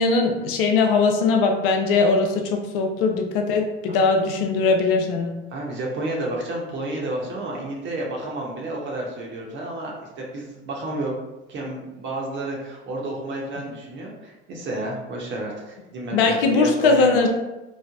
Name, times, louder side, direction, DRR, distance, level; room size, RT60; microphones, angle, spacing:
voice 1, 0.0-5.3 16.1-17.3, left 4 dB, 70° left, 3 dB, 0.6 m, -20 dB
voice 2, 5.5-11.2 11.5-17.1, right 2 dB, 40° right, -2 dB, 0.8 m, -31 dB
3.1 x 2.0 x 2.4 m, 1.0 s
hypercardioid pair, 75°, 29 cm